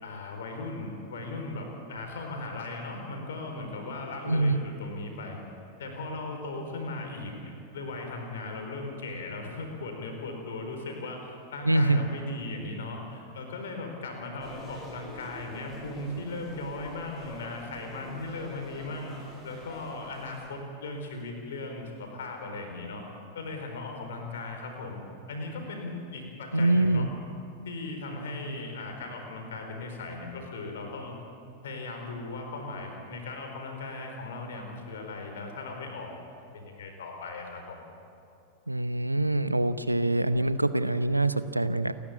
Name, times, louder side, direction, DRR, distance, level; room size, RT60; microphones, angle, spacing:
voice 1, 0.0-5.4 5.8-19.1 19.4-23.0 23.3-25.0 25.3-27.1 27.6-31.1 31.6-36.3 36.5-37.9, left 2 dB, 60° left, 3 dB, 4.5 m, -38 dB
voice 2, 4.3-4.6 11.7-12.0 26.5-27.1 38.7-41.9, right 2 dB, 85° right, 13 dB, 0.8 m, -24 dB
sound 1, 14.4-20.5, left 1 dB, 15° left, 7.5 m, -46 dB
29.0 x 12.0 x 8.6 m, 2.7 s
figure-of-eight pair, 90°, 0 cm